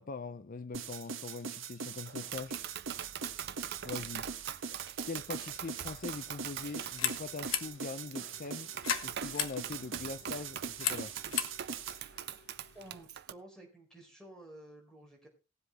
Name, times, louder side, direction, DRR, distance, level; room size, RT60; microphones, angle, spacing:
voice 1, 0.0-2.7 3.8-4.3 5.0-8.7 9.0-11.1, left 4 dB, 45° left, 0.6 m, -42 dB
sound 1, 0.7-12.0, right 6 dB, 70° right, 1.4 m, -42 dB
Tap, 2.1-13.3, right 10 dB, 55° right, 0.5 m, -43 dB
sound 2, 6.7-13.0, left 9 dB, 80° left, 1.2 m, -39 dB
voice 2, 12.7-15.3, right 1 dB, 5° left, 4.4 m, -52 dB
19.0 x 7.8 x 3.1 m
head